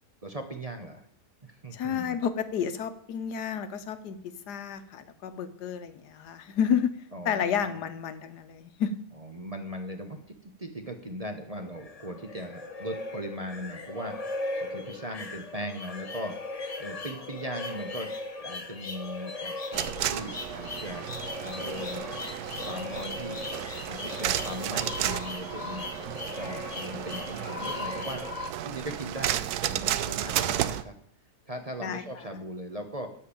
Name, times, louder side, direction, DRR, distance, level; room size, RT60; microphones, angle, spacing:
voice 1, 0.2-1.0 1.4-2.2 7.1-7.7 9.3-18.1 18.4-21.1 21.4-23.4 23.9-30.9 31.5-33.1, right 1 dB, 30° right, 5 dB, 0.9 m, -39 dB
voice 2, 1.7-4.2 4.5-8.9 26.9-27.1 31.8-32.0, left 7 dB, 80° left, 11 dB, 1.5 m, -31 dB
sound 1, 11.5-28.5, left 3 dB, 30° left, 0.8 m, -38 dB
sound 2, 19.7-30.8, right 12 dB, 75° right, 1.1 m, -33 dB
13.0 x 4.5 x 8.4 m, 0.63 s
omnidirectional pair, 1.7 m